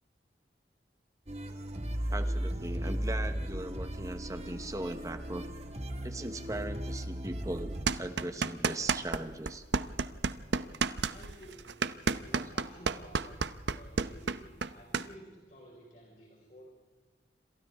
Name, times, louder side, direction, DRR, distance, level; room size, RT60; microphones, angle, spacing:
sound 1, 1.3-7.8, equal, 35° right, 1.9 m, -36 dB
voice 1, 2.1-5.5 6.0-9.6 12.3-12.5, right 1 dB, 20° right, 8 dB, 1.1 m, -39 dB
sound 2, 7.9-9.2 9.5-15.1, right 4 dB, 80° right, 0.8 m, -30 dB
voice 2, 11.1-11.8 12.2-16.6, equal, 45° left, -2 dB, 5.0 m, -53 dB
28.0 x 26.0 x 3.6 m, 1.4 s
head